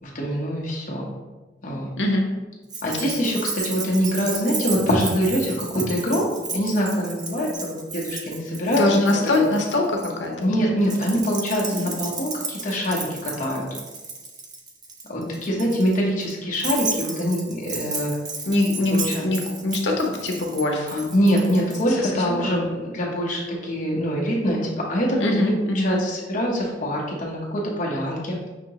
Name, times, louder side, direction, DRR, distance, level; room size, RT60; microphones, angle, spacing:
voice 1, 0.0-1.0 1.6-1.9 2.8-6.2 6.5-8.8 10.4-13.7 15.1-18.1 18.9-19.3 20.9-28.4, equal, 45° left, -3 dB, 1.0 m, -24 dB
Keys jangling, 2.7-10.1 10.8-21.8, right 3 dB, 25° right, 0.5 m, -33 dB
voice 2, 8.8-11.0 11.7-11.9 15.2-15.3 18.4-21.1 21.5-21.6 22.0-22.8 25.2-25.9, left 2 dB, 85° left, 2 dB, 0.8 m, -24 dB
5.9 x 2.8 x 2.9 m, 1.2 s
head